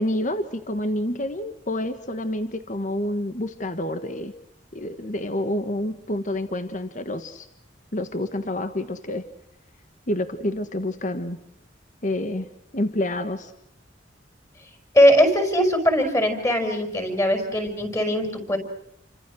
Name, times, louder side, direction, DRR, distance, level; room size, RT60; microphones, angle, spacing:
voice 1, 0.0-4.3 4.7-7.5 7.9-9.2 10.1-11.4 12.0-12.5 12.7-13.5, left 1 dB, 40° left, 9 dB, 1.6 m, -28 dB
voice 2, 14.9-18.6, equal, 15° left, 7 dB, 5.6 m, -20 dB
30.0 x 25.5 x 6.4 m, 0.77 s
head